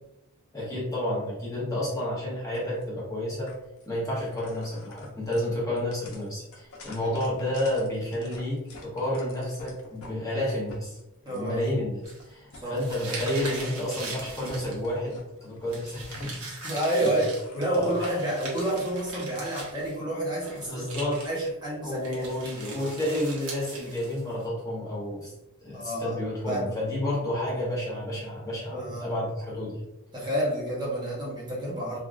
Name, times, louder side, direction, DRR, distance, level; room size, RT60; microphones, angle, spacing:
voice 1, 0.5-3.5 3.9-11.0 11.3-16.5 17.0-17.3 17.7-18.1 20.6-21.2 21.8-25.3 25.6-29.8, left 1 dB, 15° left, -6 dB, 0.8 m, -30 dB
sound 1, 2.5-2.8 3.5-3.9 4.2-10.1 10.5-11.5 12.0-12.2 12.5-15.2 15.6-18.1, left 2 dB, 75° left, 0.7 m, -48 dB
voice 2, 11.2-11.6 12.5-12.7 16.6-22.3 25.7-26.2 26.5-26.8 28.7-29.1 30.1-32.0, right 1 dB, 20° right, -6 dB, 0.8 m, -29 dB
sound 2, 12.0-15.0 15.7-20.0 20.3-21.5 22.0-24.4, right 3 dB, 80° right, 1.0 m, -41 dB
3.5 x 2.3 x 2.4 m, 0.90 s
head